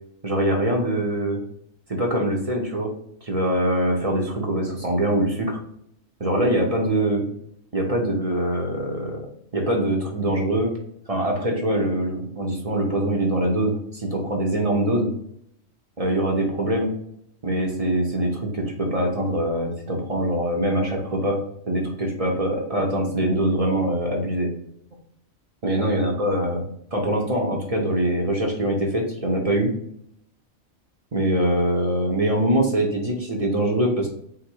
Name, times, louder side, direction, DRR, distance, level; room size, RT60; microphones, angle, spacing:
voice 1, 0.2-1.4 1.9-2.9 3.2-5.6 6.2-7.2 7.7-9.2 9.5-10.7 11.1-15.1 16.0-16.9 17.4-21.4 21.7-24.5 25.6-26.6 26.9-29.7 31.1-34.1, right 1 dB, 35° right, 0 dB, 0.7 m, -23 dB
3.9 x 2.6 x 4.5 m, 0.69 s
omnidirectional pair, 1.4 m